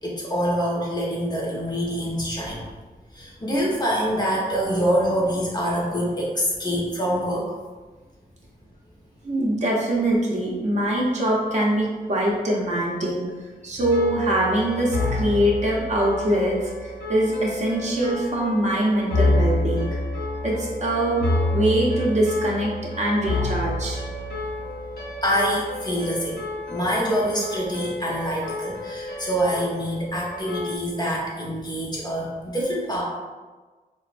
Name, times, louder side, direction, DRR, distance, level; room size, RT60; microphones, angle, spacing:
voice 1, 0.0-2.7 3.1-7.5 25.2-26.4 26.7-33.0, equal, 25° left, -4 dB, 0.6 m, -25 dB
voice 2, 9.2-13.3 13.6-20.0 20.4-21.2 21.5-24.0, right 1 dB, 45° right, -4 dB, 0.6 m, -23 dB
sound 1, 13.8-30.8, left 2 dB, 80° left, 0.7 m, -29 dB
3.0 x 2.0 x 2.5 m, 1.3 s
wide cardioid pair, 90°, 16 cm